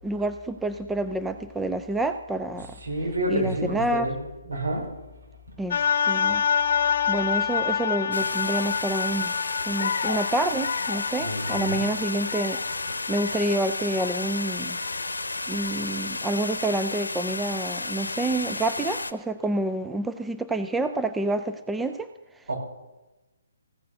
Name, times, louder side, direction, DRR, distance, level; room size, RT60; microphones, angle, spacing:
voice 1, 0.0-2.8 3.3-4.1 5.6-6.4 7.1-9.3 9.7-12.6 13.1-14.8 15.5-22.1 22.4-22.5, right 2 dB, 5° right, 9 dB, 0.4 m, -28 dB
voice 2, 2.8-4.2 4.4-4.9 11.2-11.9 22.5-22.6, right 1 dB, 75° right, 0 dB, 5.0 m, -29 dB
sound 1, 5.7-15.9 16.5-16.6, left 7 dB, 55° left, 0.5 m, -28 dB
sound 2, 8.1-19.1, left 3 dB, 85° left, 0.8 m, -32 dB
15.5 x 6.6 x 6.6 m, 1.1 s
figure-of-eight pair, 140°, 0 cm